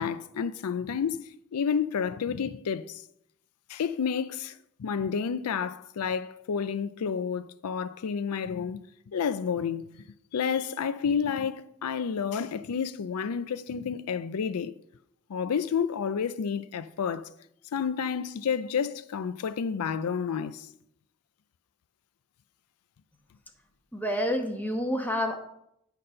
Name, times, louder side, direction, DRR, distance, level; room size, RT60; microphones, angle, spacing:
voice 1, 0.0-3.0 3.7-8.8 9.1-9.8 10.3-14.7 15.3-17.2 17.7-20.7, left 6 dB, 85° left, 0.4 m, -30 dB
voice 2, 23.9-25.4, equal, 10° left, 1.0 m, -28 dB
8.7 x 4.1 x 6.4 m
head